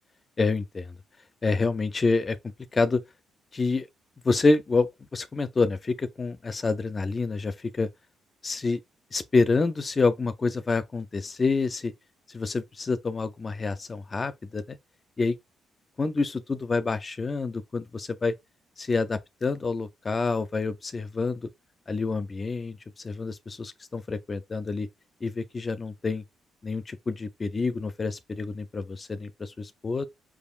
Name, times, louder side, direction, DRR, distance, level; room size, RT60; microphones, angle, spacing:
voice 1, 0.4-0.9 1.4-2.4 2.7-3.0 3.5-3.9 4.2-7.9 8.4-8.8 9.1-11.9 12.3-14.8 15.2-15.4 16.0-18.3 18.8-21.5 21.9-24.9 25.2-26.2 26.6-30.0, left 3 dB, 30° left, 0.4 m, -27 dB
4.9 x 3.5 x 2.4 m
cardioid pair, 90°, 0 cm